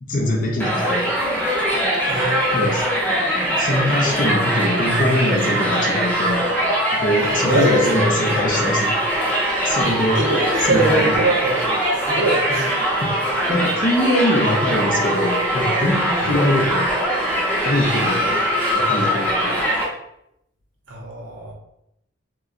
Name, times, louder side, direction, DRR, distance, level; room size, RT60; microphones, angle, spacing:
voice 1, 0.0-1.1 2.5-2.8 3.6-6.4 6.9-8.9 9.6-10.2 10.7-11.0 13.0-13.1 13.5-16.9 17.6-18.4 18.7-19.7, left 1 dB, 45° left, 0 dB, 0.7 m, -22 dB
Crowd, 0.6-19.8, equal, 10° left, 0.8 m, -21 dB
voice 2, 2.1-2.8 7.2-8.1 10.1-11.7 11.9-12.9 16.2-16.4 20.9-21.5, right 2 dB, 90° right, 0 dB, 0.8 m, -23 dB
2.9 x 2.3 x 3.7 m, 0.79 s
head